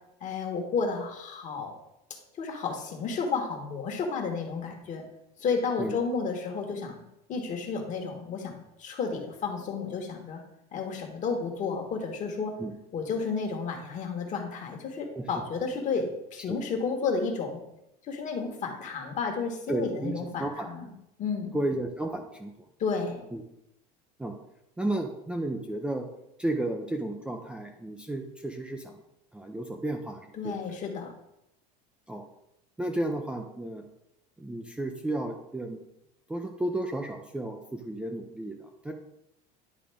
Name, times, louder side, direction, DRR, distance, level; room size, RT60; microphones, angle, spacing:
voice 1, 0.2-1.7 2.4-5.0 5.4-7.0 7.3-10.4 10.7-12.5 12.9-17.6 18.1-20.9 21.2-21.6 22.8-23.2 30.4-31.1, left 5 dB, 40° left, 3 dB, 1.5 m, -32 dB
voice 2, 19.7-20.7 21.5-22.5 23.3-23.4 24.2-24.4 24.8-26.1 26.4-29.0 29.3-30.8 32.1-32.2 32.8-33.8 34.4-35.8 36.3-38.9, right 1 dB, 5° right, 2 dB, 0.5 m, -33 dB
10.5 x 3.6 x 3.5 m, 0.85 s
supercardioid pair, 120°, 19 cm